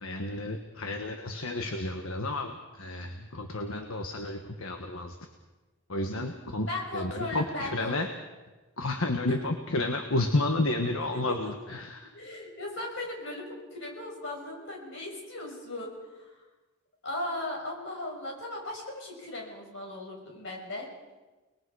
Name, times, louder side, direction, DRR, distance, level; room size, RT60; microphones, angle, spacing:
voice 1, 0.0-5.2 5.9-6.7 6.9-8.1 8.8-12.1, left 2 dB, 75° left, 5 dB, 1.5 m, -31 dB
voice 2, 6.7-8.0 9.3-9.4 11.1-11.5 12.1-13.5 13.7-16.4 17.0-20.9, left 2 dB, 55° left, -1 dB, 6.2 m, -37 dB
30.0 x 21.0 x 4.9 m, 1.2 s
head